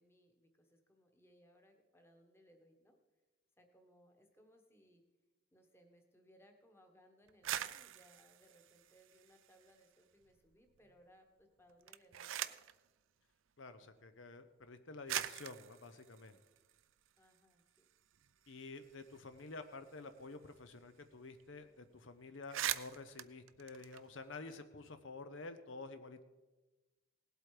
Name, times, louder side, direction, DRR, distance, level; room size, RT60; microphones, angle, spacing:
voice 1, 0.0-3.0 3.6-5.1 5.5-12.6 17.2-17.9, equal, 10° left, 4 dB, 1.3 m, -67 dB
sound 1, 7.3-9.9 10.2-10.9 11.7-12.8 13.8-13.9 14.7-14.8 15.1-17.4 17.8-17.9 18.1-20.7 21.0-21.1 21.4-21.6 22.0-22.1 22.3-24.6, right 11 dB, 80° right, 0.5 m, -44 dB
voice 2, 13.6-16.4 18.5-26.2, left 3 dB, 70° left, 9 dB, 0.8 m, -50 dB
18.0 x 8.1 x 4.9 m, 1.2 s
head